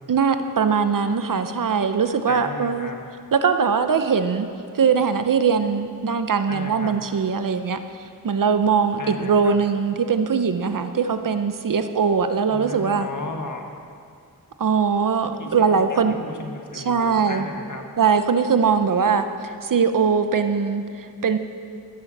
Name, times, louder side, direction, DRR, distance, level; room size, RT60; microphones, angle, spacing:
voice 1, 0.1-2.9 3.3-4.5 4.7-7.8 8.2-13.1 14.6-16.1 16.7-17.5 18.0-21.4, right 6 dB, 60° right, 9 dB, 0.7 m, -21 dB
voice 2, 2.3-3.0 6.5-6.9 9.0-9.6 12.5-13.6 15.2-17.8, left 3 dB, 55° left, 3 dB, 1.5 m, -35 dB
16.0 x 6.8 x 7.3 m, 2.3 s
wide cardioid pair, 100°, 36 cm